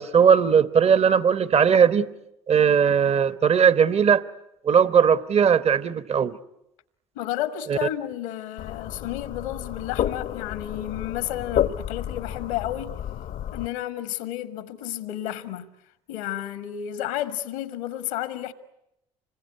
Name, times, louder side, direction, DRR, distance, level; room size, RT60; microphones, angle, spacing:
voice 1, 0.0-2.1 2.5-4.2 4.6-6.4 7.7-7.8, right 7 dB, 40° right, 1.1 m, -19 dB
voice 2, 7.2-13.0 13.5-15.7 16.1-18.5, left 12 dB, 80° left, 1.6 m, -31 dB
sound 1, 8.6-13.7, left 11 dB, 60° left, 0.9 m, -30 dB
26.5 x 21.0 x 9.5 m
hypercardioid pair, 60°, 16 cm